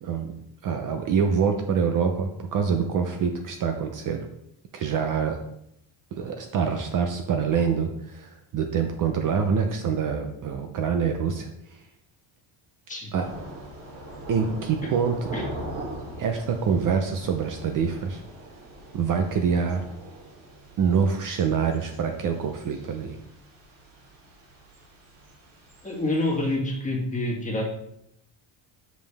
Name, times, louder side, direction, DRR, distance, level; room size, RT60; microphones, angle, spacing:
voice 1, 0.0-0.3 0.6-4.2 4.7-5.4 6.2-11.5 13.1-13.3 14.3-15.2 16.2-18.2 18.9-19.8 20.8-23.2, right 6 dB, 45° right, 5 dB, 0.7 m, -25 dB
Thunder / Rain, 13.2-26.6, right 1 dB, 65° right, 2.7 m, -42 dB
voice 2, 25.8-27.6, left 1 dB, 15° left, -2 dB, 1.5 m, -27 dB
7.4 x 5.4 x 3.4 m, 0.77 s
cardioid pair, 155°, 47 cm